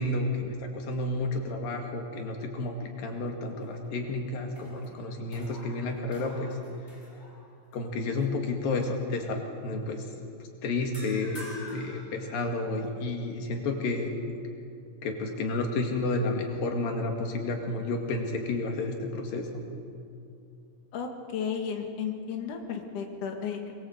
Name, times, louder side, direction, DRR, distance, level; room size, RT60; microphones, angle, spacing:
voice 1, 0.0-6.6 7.7-10.1 10.6-14.1 15.0-19.6, left 2 dB, 85° left, 2 dB, 3.9 m, -31 dB
sound 1, 3.4-4.1 4.5-7.8 8.2-8.5 10.9-12.9, left 1 dB, 15° left, 5.8 m, -48 dB
voice 2, 20.9-23.7, left 7 dB, 65° left, 3 dB, 3.5 m, -34 dB
24.5 x 21.5 x 8.1 m, 2.5 s
omnidirectional pair, 3.9 m